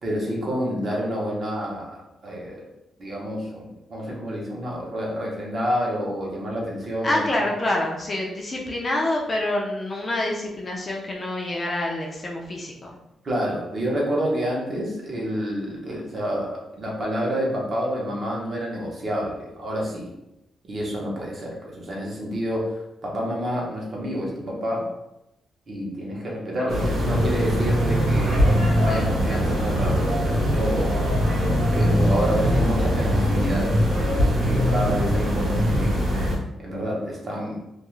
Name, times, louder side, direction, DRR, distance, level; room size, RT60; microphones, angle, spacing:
voice 1, 0.0-2.6 3.0-7.2 13.2-20.1 20.7-24.9 25.7-31.1 31.7-36.0 36.6-37.6, equal, 35° right, -3 dB, 0.7 m, -28 dB
voice 2, 7.0-12.9, left 1 dB, 25° left, -1 dB, 0.3 m, -26 dB
sound 1, 26.7-36.4, equal, 90° right, 0.9 m, -22 dB
2.3 x 2.3 x 3.0 m, 0.90 s
wide cardioid pair, 180°, 0 cm